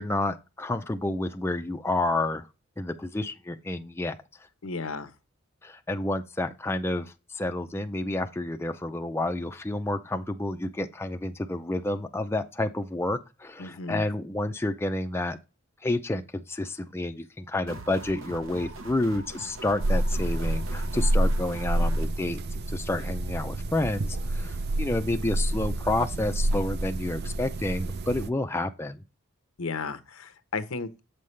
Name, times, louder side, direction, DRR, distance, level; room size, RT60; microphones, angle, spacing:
voice 1, 0.0-2.5 2.8-4.2 5.6-15.4 15.8-22.4 22.7-29.0, left 2 dB, 10° left, 0.4 m, -30 dB
voice 2, 4.6-5.1 13.6-14.0 29.6-31.0, left 4 dB, 85° left, 0.8 m, -34 dB
sound 1, 17.7-22.1, right 2 dB, 70° right, 0.9 m, -42 dB
sound 2, 19.8-28.3, right 1 dB, 50° right, 0.4 m, -28 dB
7.6 x 5.5 x 3.2 m
head